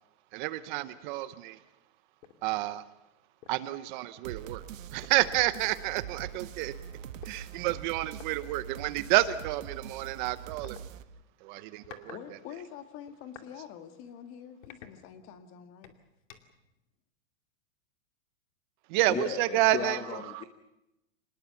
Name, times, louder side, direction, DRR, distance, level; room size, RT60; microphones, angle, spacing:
voice 1, 0.3-1.6 2.4-2.8 3.5-4.6 4.9-6.7 7.2-10.8 11.4-12.2 18.9-20.0 20.3-20.4, right 16 dB, 35° right, 0.9 m, -29 dB
sound 1, 2.2-2.4 2.9-3.0 3.4-3.7 4.7-4.8 5.0-6.4 7.2-7.4 8.1-8.3 9.3-9.5 10.6-10.8 11.6-12.2 12.6-13.5 14.0-14.1 14.6-15.4 15.8-16.6, left 9 dB, 65° left, 2.6 m, -51 dB
sound 2, 4.2-11.0, right 9 dB, 75° right, 1.4 m, -43 dB
voice 2, 12.1-16.0, left 9 dB, 35° left, 2.0 m, -46 dB
voice 3, 19.1-20.4, left 8 dB, 15° left, 0.8 m, -36 dB
26.5 x 19.5 x 7.1 m
hypercardioid pair, 150°, 40 cm